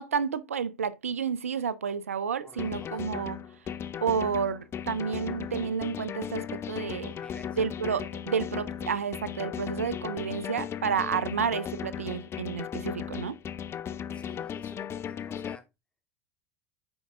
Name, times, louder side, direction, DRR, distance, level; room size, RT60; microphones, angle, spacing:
voice 1, 0.0-3.4 4.0-7.1 7.6-13.4, right 6 dB, 90° right, 0.6 m, -30 dB
voice 2, 2.4-3.0 7.0-7.6 14.1-15.6, left 2 dB, 15° left, 2.9 m, -50 dB
sound 1, 2.6-15.6, left 8 dB, 35° left, 0.7 m, -36 dB
9.0 x 5.9 x 3.7 m
hypercardioid pair, 80°, 7 cm